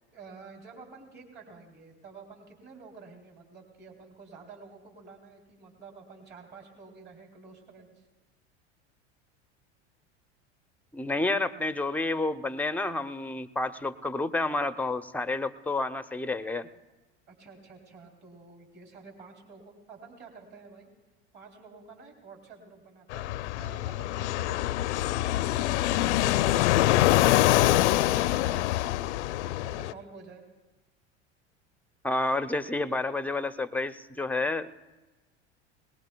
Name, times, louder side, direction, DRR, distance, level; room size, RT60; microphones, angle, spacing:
voice 1, 0.1-8.1 17.3-20.9 21.3-29.0 29.4-30.4, right 4 dB, 30° right, 2 dB, 3.0 m, -50 dB
voice 2, 10.9-16.7 32.0-34.7, left 2 dB, 5° left, 12 dB, 0.6 m, -30 dB
Fixed-wing aircraft airplane, 23.1-29.9, left 15 dB, 75° left, 0.5 m, -25 dB
21.0 x 20.0 x 2.2 m, 1.2 s
hypercardioid pair, 80°, 35 cm